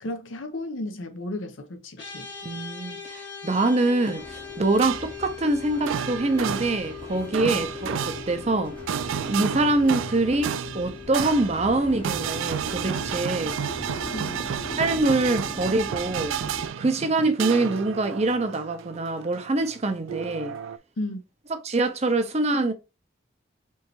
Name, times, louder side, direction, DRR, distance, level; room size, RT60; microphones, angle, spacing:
voice 1, 0.0-2.3 7.4-7.7 9.3-9.6 14.1-14.4 21.0-21.2, left 1 dB, 80° left, 0.8 m, -34 dB
sound 1, 2.0-13.4, left 8 dB, 55° left, 1.7 m, -42 dB
voice 2, 2.4-8.8 9.3-13.6 14.8-16.4 16.8-20.5 21.6-22.7, right 2 dB, 35° right, 0.6 m, -24 dB
sound 2, 4.2-16.7, left 1 dB, 25° left, 0.8 m, -40 dB
sound 3, 4.8-5.3 5.7-19.7 20.1-20.8, right 8 dB, 85° right, 0.3 m, -31 dB
4.6 x 3.2 x 2.9 m
head